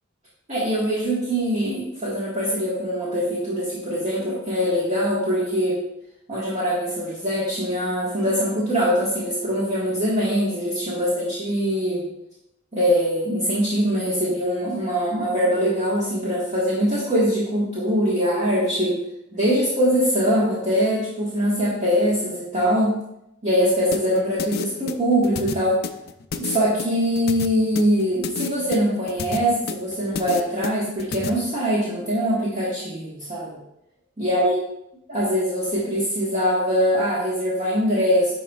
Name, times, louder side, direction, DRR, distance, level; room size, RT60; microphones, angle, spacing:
voice 1, 0.5-5.8 6.3-12.0 12.7-19.0 19.3-23.0 23.4-25.8 26.4-33.6 34.2-34.6 35.1-38.3, equal, 35° right, -9 dB, 1.4 m, -22 dB
sound 1, 23.9-31.3, left 6 dB, 50° left, 0.4 m, -30 dB
11.0 x 4.0 x 2.4 m, 0.81 s
head